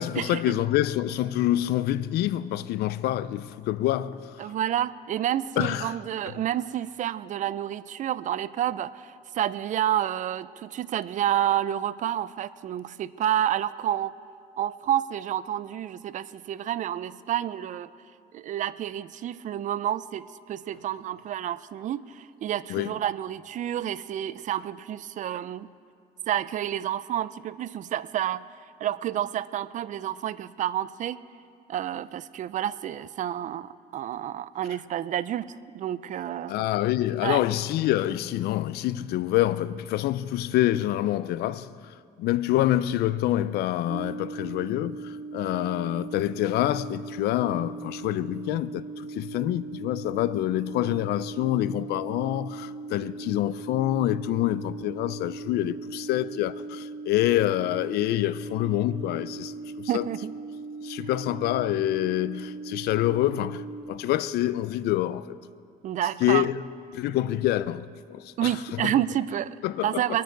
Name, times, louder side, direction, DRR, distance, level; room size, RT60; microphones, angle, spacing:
voice 1, 0.0-4.5 5.6-5.9 22.7-22.9 36.5-60.1 60.8-65.4 66.2-66.6 66.9-68.9 69.6-70.2, left 14 dB, 75° left, 0.4 m, -27 dB
voice 2, 4.4-14.1 14.6-17.9 18.3-25.7 26.3-28.4 28.8-31.2 31.7-36.6 37.2-37.4 59.9-60.3 65.8-66.5 68.4-69.5 69.8-70.2, right 11 dB, 50° right, 0.4 m, -29 dB
sound 1, 43.9-63.8, right 3 dB, 25° right, 1.3 m, -39 dB
23.5 x 9.4 x 4.6 m
cardioid pair, 110°, 17 cm